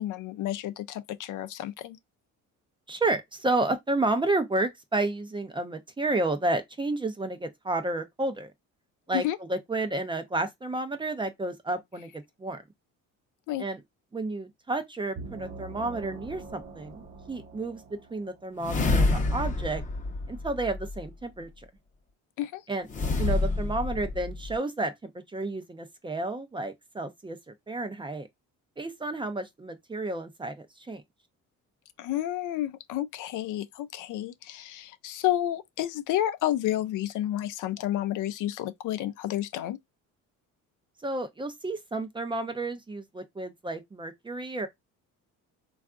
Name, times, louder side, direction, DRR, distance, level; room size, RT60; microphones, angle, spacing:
voice 1, 0.0-2.0 9.1-9.4 13.5-13.6 22.4-22.6 32.0-39.8, left 13 dB, 65° left, 0.5 m, -30 dB
voice 2, 2.9-8.5 9.1-12.6 13.6-13.8 14.1-19.8 20.3-21.7 22.7-22.9 23.2-28.3 28.8-31.0 41.0-44.7, right 2 dB, 15° right, 0.4 m, -31 dB
sound 1, 15.2-18.7, right 3 dB, 45° right, 0.9 m, -44 dB
sound 2, 16.3-16.4 18.6-21.1 22.9-24.6, left 3 dB, 25° left, 0.7 m, -28 dB
3.4 x 2.4 x 2.3 m
cardioid pair, 120°, 33 cm